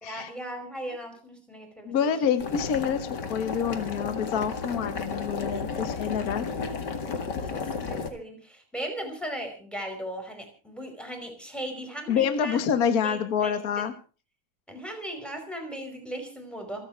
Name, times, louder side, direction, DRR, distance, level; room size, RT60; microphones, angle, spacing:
voice 1, 0.0-2.1 7.3-12.6 13.0-13.8 14.7-16.9, right 1 dB, ahead, 4 dB, 4.6 m, -37 dB
voice 2, 1.8-6.5 12.1-13.9, left 7 dB, 65° left, 10 dB, 0.9 m, -27 dB
Boiling, 2.4-8.1, left 5 dB, 40° left, 1.8 m, -33 dB
27.5 x 9.5 x 4.6 m, 0.38 s
omnidirectional pair, 4.0 m